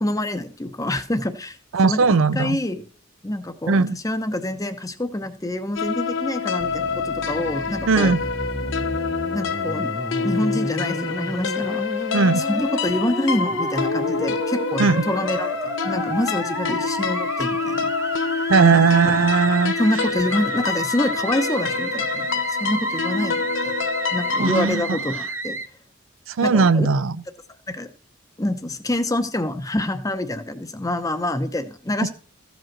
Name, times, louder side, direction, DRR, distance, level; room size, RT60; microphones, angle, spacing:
voice 1, 0.0-1.6 1.8-2.8 3.2-8.2 9.3-9.9 10.2-11.8 12.4-17.9 18.7-18.9 19.8-25.6 26.4-26.9 27.7-27.9 28.4-32.1, left 1 dB, 15° left, 0.8 m, -26 dB
voice 2, 1.7-2.6 3.7-4.0 7.9-8.2 12.1-12.4 14.8-15.0 18.5-19.7 24.4-25.0 26.3-27.1, right 4 dB, 75° right, 0.5 m, -18 dB
sound 1, 5.8-24.7, left 5 dB, 65° left, 0.8 m, -27 dB
Musical instrument, 6.6-25.7, right 2 dB, 10° right, 0.6 m, -31 dB
15.0 x 5.2 x 6.0 m
head